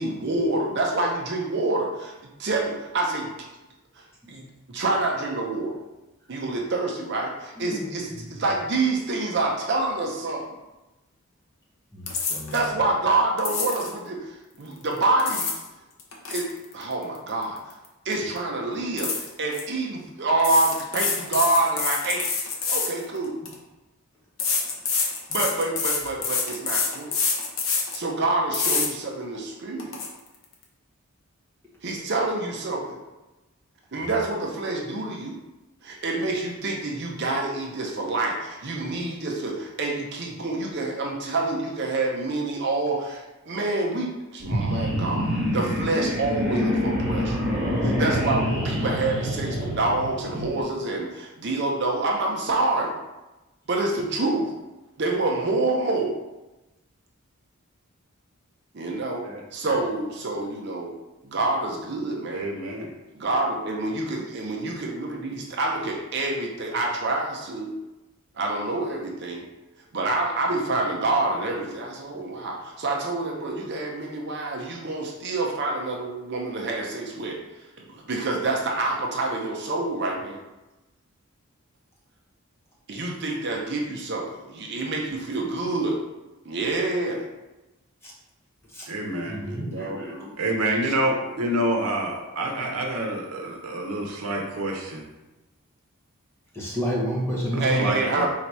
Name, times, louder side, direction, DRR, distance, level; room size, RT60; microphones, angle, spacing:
voice 1, 0.0-2.1 2.4-3.5 4.0-5.7 6.3-10.4 12.5-15.5 16.3-16.5 16.7-17.7 18.0-22.3 22.7-23.4 25.3-27.3 27.9-30.0 31.8-33.0 33.9-35.4 35.8-47.4 47.8-52.9 53.7-54.5 55.0-56.1 58.7-59.2 59.5-60.9 61.2-62.5 63.1-67.7 68.4-69.4 69.9-77.4 77.8-80.4 82.9-86.0 86.4-87.2 89.4-90.0 90.8-91.1 97.6-98.3, right 2 dB, 50° right, 0 dB, 0.6 m, -27 dB
voice 2, 7.6-7.9 11.9-12.5 88.7-88.8 89.3-90.3 96.5-97.9, equal, 10° left, -5 dB, 1.0 m, -29 dB
sound 1, 12.1-12.6 13.4-13.9 15.0-15.7 16.0-17.9 18.1-18.4 19.0-19.6 20.4-23.5 24.4-28.0 28.5-28.9 29.4-29.5 29.8-30.1, left 5 dB, 65° left, 0.8 m, -27 dB
sound 2, 44.4-50.6, equal, 10° right, 1.5 m, -26 dB
voice 3, 59.2-59.8 62.3-62.9 88.9-89.4 90.4-95.0 97.5-98.3, right 1 dB, 85° right, 1 dB, 0.8 m, -27 dB
4.0 x 2.8 x 4.6 m, 1.0 s
head